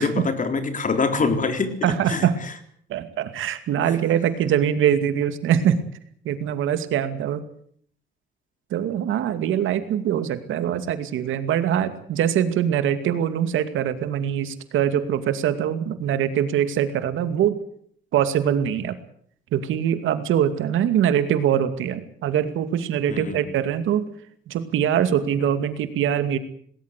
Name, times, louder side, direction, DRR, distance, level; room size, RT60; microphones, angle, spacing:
voice 1, 0.0-2.3 23.1-23.4, left 4 dB, 40° left, 8 dB, 3.9 m, -24 dB
voice 2, 1.8-2.4 2.9-5.8 6.2-7.4 8.7-17.6 18.1-19.0 19.5-24.0 24.5-26.4, right 9 dB, 80° right, 10 dB, 2.4 m, -23 dB
19.5 x 18.0 x 8.3 m, 0.62 s
cardioid pair, 90°, 20 cm